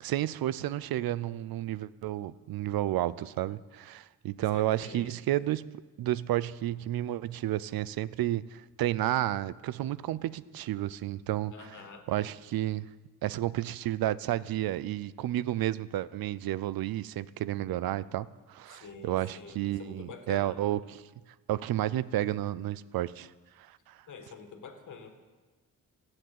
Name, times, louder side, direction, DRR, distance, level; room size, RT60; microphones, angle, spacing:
voice 1, 0.0-5.6 6.0-11.8 12.1-12.8 13.2-21.0 21.5-23.3 23.9-24.0, right 13 dB, 90° right, 18 dB, 0.6 m, -31 dB
voice 2, 4.5-5.2 11.5-12.1 18.7-20.6 24.1-25.2, left 5 dB, 60° left, 6 dB, 1.9 m, -47 dB
15.5 x 8.0 x 9.3 m, 1.3 s
cardioid pair, 105°, 34 cm